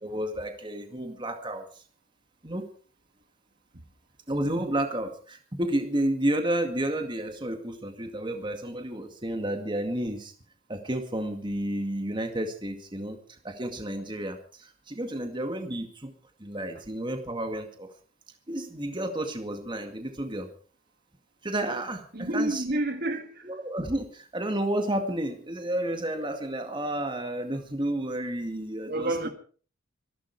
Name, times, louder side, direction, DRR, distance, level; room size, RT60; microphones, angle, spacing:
voice 1, 0.0-1.7 2.4-2.6 4.3-10.3 10.7-13.2 13.4-16.1 16.4-17.9 18.5-20.5 21.4-22.6 23.4-29.3, right 1 dB, 25° right, 2.1 m, -31 dB
voice 2, 22.1-23.5 28.9-29.3, right 1 dB, 50° right, 2.1 m, -29 dB
25.0 x 11.5 x 4.7 m
head